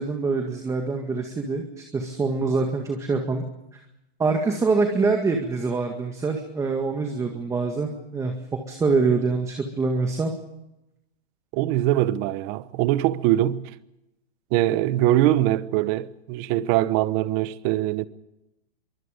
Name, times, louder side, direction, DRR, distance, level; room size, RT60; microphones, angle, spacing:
voice 1, 0.0-3.4 3.7-3.8 4.2-8.3 8.7-10.3, right 4 dB, 10° right, 1.9 m, -25 dB
voice 2, 11.5-13.7 14.5-18.1, right 14 dB, 30° right, 1.0 m, -22 dB
24.0 x 24.0 x 5.2 m
hypercardioid pair, 155°, 31 cm